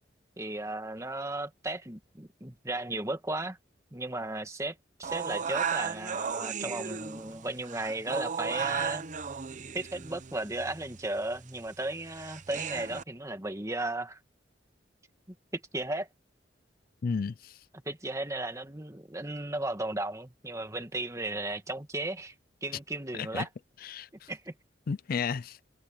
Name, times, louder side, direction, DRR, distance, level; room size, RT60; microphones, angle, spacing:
voice 1, 0.4-3.6 3.9-9.0 9.7-14.2 15.5-16.1 17.9-22.3 22.6-23.5 24.3-24.5, right 2 dB, 15° right, 2.0 m, -35 dB
sound 1, 5.0-13.0, right 6 dB, 45° right, 0.8 m, -35 dB
voice 2, 17.0-17.6 23.1-23.5 23.8-24.3 24.9-25.6, left 5 dB, 50° left, 0.4 m, -33 dB
head